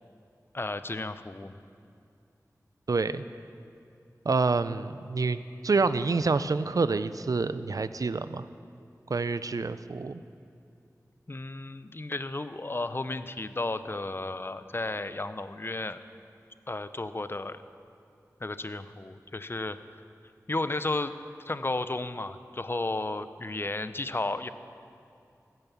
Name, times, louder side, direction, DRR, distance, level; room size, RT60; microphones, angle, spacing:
voice 1, 0.5-1.6 11.3-16.0 16.7-17.6 18.4-19.8 20.5-21.1 21.5-24.5, left 2 dB, 35° left, 12 dB, 0.6 m, -33 dB
voice 2, 2.9-3.2 4.2-8.5 9.1-10.2, right 4 dB, 65° right, 13 dB, 0.5 m, -27 dB
16.0 x 9.0 x 7.0 m, 2.5 s
wide cardioid pair, 60°, 6 cm